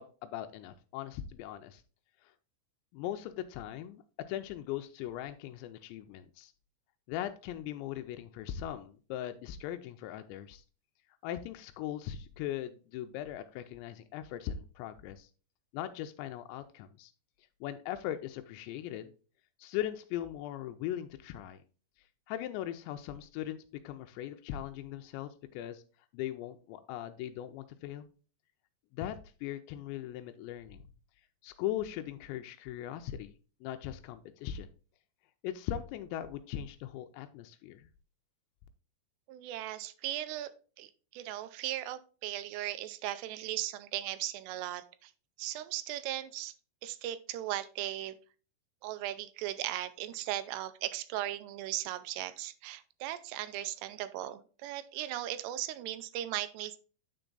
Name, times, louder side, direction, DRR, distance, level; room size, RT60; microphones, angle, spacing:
voice 1, 0.0-1.8 2.2-2.3 2.9-4.0 4.3-6.5 7.1-10.6 11.2-15.3 15.7-17.1 17.6-19.1 19.6-21.6 22.3-25.8 26.1-28.1 28.9-30.8 31.4-33.3 33.6-34.7 35.4-37.9, left 11 dB, 90° left, 8 dB, 2.8 m, -39 dB
voice 2, 39.3-40.5 40.8-45.1 45.4-46.6 46.8-48.2 48.8-56.8, right 13 dB, 85° right, 13 dB, 2.7 m, -37 dB
9.2 x 4.5 x 3.8 m, 0.37 s
omnidirectional pair, 5.0 m